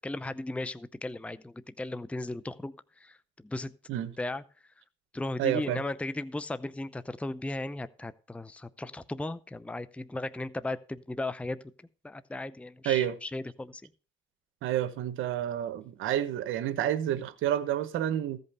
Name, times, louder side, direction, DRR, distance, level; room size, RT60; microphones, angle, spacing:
voice 1, 0.0-3.2 3.4-3.7 4.2-4.4 5.1-11.6 12.0-13.8, left 2 dB, 5° left, 0.6 m, -36 dB
voice 2, 5.4-5.8 12.8-13.2 14.6-18.4, right 11 dB, 90° right, 1.2 m, -29 dB
15.0 x 5.4 x 6.7 m
cardioid pair, 90°, 20 cm